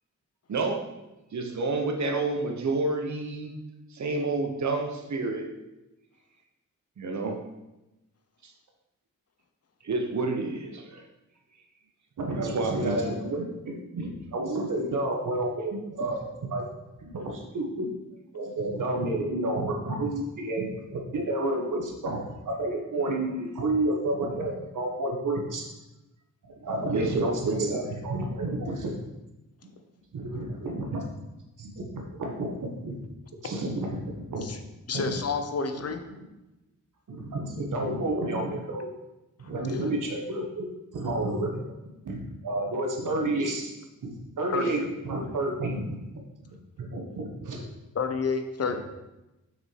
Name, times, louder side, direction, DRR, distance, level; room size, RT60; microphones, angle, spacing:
voice 1, 0.5-0.8 1.3-3.5 3.9-5.5 7.0-7.4 8.4-8.5 9.8-11.0 12.4-13.1 26.9-27.9, right 3 dB, 65° right, 3 dB, 1.1 m, -29 dB
voice 2, 12.2-16.6 17.0-17.9 18.3-25.6 26.6-27.7 28.0-28.9 30.1-31.1 31.6-33.0 33.4-34.4 34.9-35.1 35.8-35.9 37.1-38.9 39.5-40.7 40.9-41.7 42.0-43.7 44.0-46.0 46.8-47.6 48.6-48.8, right 2 dB, 80° right, 1 dB, 1.5 m, -30 dB
voice 3, 34.9-36.0 39.7-39.8 44.5-44.8 47.9-48.8, left 5 dB, 50° left, 7 dB, 0.7 m, -29 dB
6.1 x 6.1 x 4.6 m, 0.99 s
wide cardioid pair, 135°, 31 cm